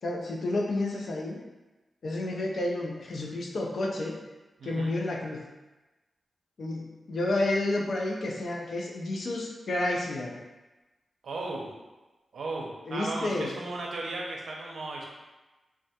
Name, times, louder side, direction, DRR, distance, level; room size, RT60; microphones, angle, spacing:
voice 1, 0.0-1.4 2.0-4.2 4.6-5.5 6.6-10.4 12.9-13.5, left 2 dB, 70° left, -1 dB, 0.4 m, -30 dB
voice 2, 4.6-4.9 11.2-11.7 12.3-15.1, right 2 dB, 85° right, -2 dB, 0.4 m, -35 dB
2.2 x 2.2 x 2.7 m, 1.1 s
cardioid pair, 65°, 0 cm